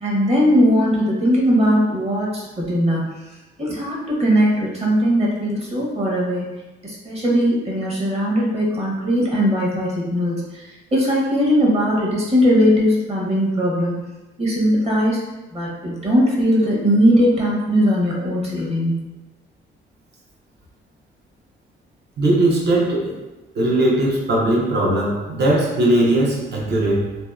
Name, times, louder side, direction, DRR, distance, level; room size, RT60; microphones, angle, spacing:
voice 1, 0.0-3.2 3.6-6.5 6.8-10.5 10.9-14.0 14.4-15.2 15.5-19.1, equal, 30° right, -4 dB, 0.9 m, -19 dB
voice 2, 22.2-23.2 23.5-27.2, right 1 dB, 60° right, -3 dB, 0.7 m, -19 dB
2.7 x 2.0 x 2.3 m, 1.1 s
cardioid pair, 90°, 20 cm